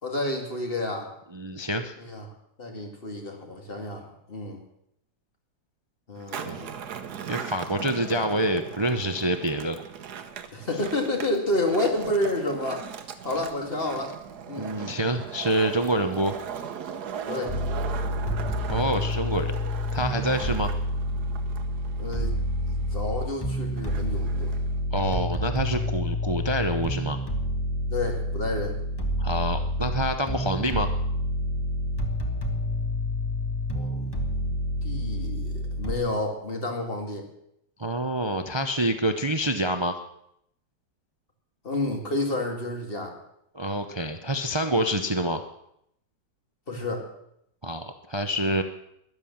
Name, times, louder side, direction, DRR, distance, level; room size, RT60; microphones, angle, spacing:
voice 1, 0.0-1.1 2.0-2.3 2.6-4.6 6.1-6.8 10.5-12.9 13.2-14.1 14.5-14.7 17.3-17.5 22.0-22.3 22.7-24.5 27.9-28.8 33.7-34.6 34.8-37.3 41.6-43.2 46.7-47.1, left 2 dB, 30° left, 2 dB, 2.6 m, -30 dB
voice 2, 1.3-1.9 6.4-6.6 7.3-9.8 14.6-16.4 18.7-19.5 19.9-20.7 24.9-27.2 29.2-30.9 37.8-40.0 43.5-45.4 47.6-48.6, right 1 dB, 45° right, 7 dB, 0.3 m, -27 dB
Skateboard, 6.2-24.8, right 7 dB, 65° right, 1.5 m, -39 dB
sound 1, 17.5-35.9, equal, 15° left, 1.5 m, -28 dB
13.0 x 11.5 x 7.2 m, 0.76 s
omnidirectional pair, 1.9 m